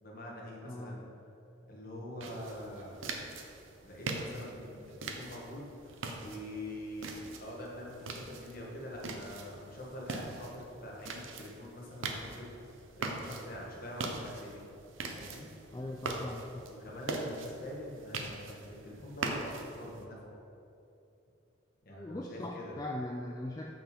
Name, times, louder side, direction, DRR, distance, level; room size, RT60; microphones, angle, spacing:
voice 1, 0.0-1.0 1.7-3.0 3.8-12.5 13.0-14.6 15.1-15.5 16.7-20.3 21.8-22.8, left 1 dB, 45° left, -3 dB, 1.5 m, -44 dB
voice 2, 0.7-1.0 15.7-16.7 21.9-23.7, left 1 dB, 20° left, 0 dB, 0.3 m, -40 dB
sound 1, 2.2-20.0, right 3 dB, 75° right, 0.8 m, -42 dB
6.8 x 5.9 x 5.3 m, 2.8 s
head